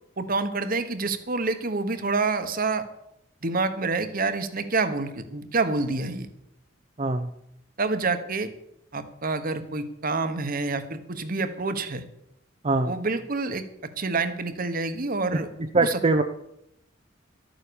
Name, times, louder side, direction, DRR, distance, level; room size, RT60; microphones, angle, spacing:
voice 1, 0.2-2.8 3.4-6.3 7.8-8.5 8.9-12.0 12.8-13.6 14.0-15.5 15.8-16.0, right 3 dB, 50° right, 10 dB, 1.3 m, -27 dB
voice 2, 7.0-7.3 12.6-12.9 15.3-16.2, right 3 dB, 35° right, 6 dB, 0.7 m, -23 dB
13.0 x 9.1 x 7.0 m, 0.79 s
head